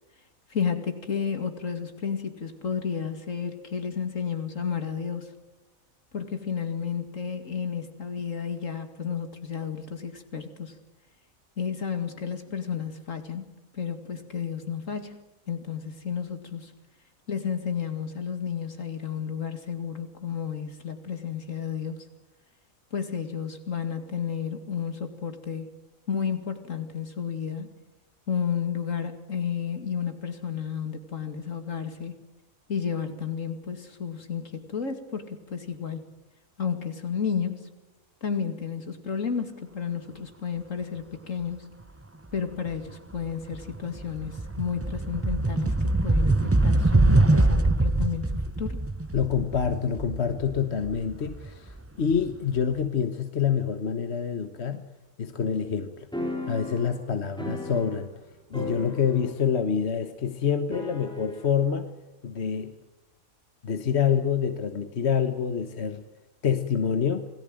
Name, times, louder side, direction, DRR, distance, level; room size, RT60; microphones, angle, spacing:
voice 1, 0.5-5.3 6.1-10.7 11.6-15.2 15.5-16.7 17.3-22.0 22.9-25.7 26.1-27.7 28.3-32.2 32.7-36.0 36.6-37.7 38.2-41.7 42.3-48.9, left 7 dB, 65° left, 7 dB, 2.7 m, -32 dB
sound 1, 42.7-42.9 43.3-52.1, right 2 dB, 15° right, 0.6 m, -24 dB
voice 2, 49.1-54.8 55.2-56.1 56.5-58.1 58.5-61.9 62.2-62.8 63.6-66.0 66.4-67.3, left 7 dB, 50° left, 8 dB, 1.4 m, -27 dB
sound 2, 56.1-58.3 58.5-59.5 59.8-59.9 60.7-61.5, left 1 dB, 5° left, 4.8 m, -36 dB
27.5 x 18.5 x 7.7 m, 1.1 s
omnidirectional pair, 1.4 m